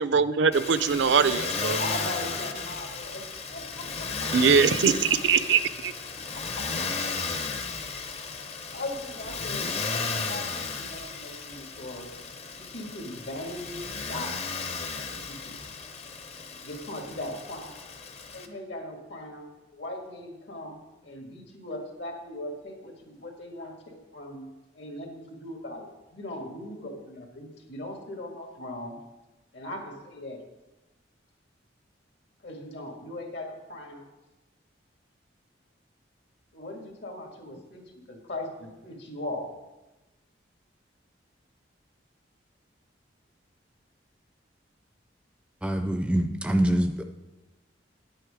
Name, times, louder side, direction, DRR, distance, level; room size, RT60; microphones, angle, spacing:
voice 1, 0.1-1.8 4.3-5.9, right 6 dB, 75° right, 13 dB, 0.5 m, -22 dB
Motor vehicle (road), 0.5-18.5, left 4 dB, 35° left, 0.7 m, -34 dB
voice 2, 1.6-5.3 6.2-7.4 8.7-12.1 12.5-13.8 14.1-14.3 14.9-15.6 16.6-17.7 18.3-19.4 19.7-20.8 21.0-24.5 24.7-29.0 29.5-30.4 32.4-34.1 36.5-37.8 38.1-39.5, left 1 dB, 70° left, 2 dB, 1.9 m, -39 dB
voice 3, 45.6-47.0, right 1 dB, 5° right, 7 dB, 0.4 m, -25 dB
9.8 x 7.8 x 5.0 m, 1.1 s
head